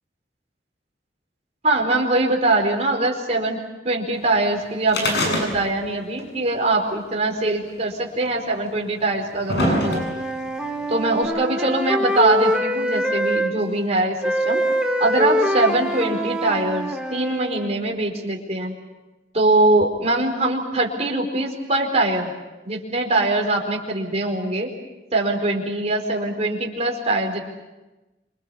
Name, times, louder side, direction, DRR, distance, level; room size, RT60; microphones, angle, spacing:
voice 1, 1.6-3.6 3.8-10.0 10.9-14.6 15.0-18.7 19.3-22.3 22.6-24.7 25.1-27.4, right 2 dB, 40° right, 1 dB, 4.7 m, -22 dB
sound 1, 4.9-5.9 6.2-6.3 7.3-7.4 8.3-8.4 9.0-10.4 11.2-11.3, left 1 dB, 65° left, 7.6 m, -23 dB
Wind instrument woodwind instrument, 9.6-13.5 14.2-17.7, equal, 5° right, 2.2 m, -24 dB
28.0 x 25.0 x 7.1 m, 1.1 s
head